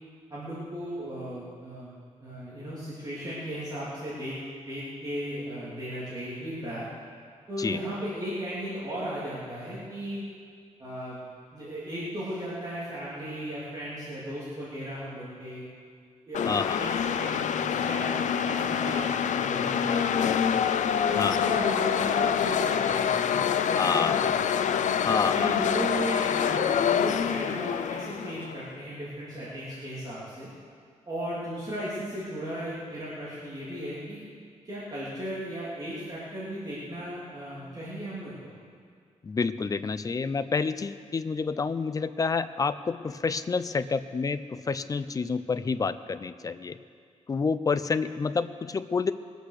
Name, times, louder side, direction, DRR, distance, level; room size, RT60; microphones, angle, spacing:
voice 1, 0.3-1.9 2.2-4.4 4.7-6.9 7.5-10.2 10.8-11.2 11.5-15.6 16.3-20.5 21.1-24.2 25.1-30.5 31.1-34.2 34.6-38.5, equal, 30° right, -9 dB, 3.0 m, -36 dB
sound 1, 16.3-28.6, left 8 dB, 75° left, 0.6 m, -26 dB
voice 2, 16.4-16.8 21.2-21.5 23.8-24.1 25.0-25.5 39.2-46.8 47.3-49.1, left 4 dB, 30° left, 13 dB, 0.4 m, -28 dB
21.0 x 8.3 x 6.5 m, 2.1 s
wide cardioid pair, 165°, 13 cm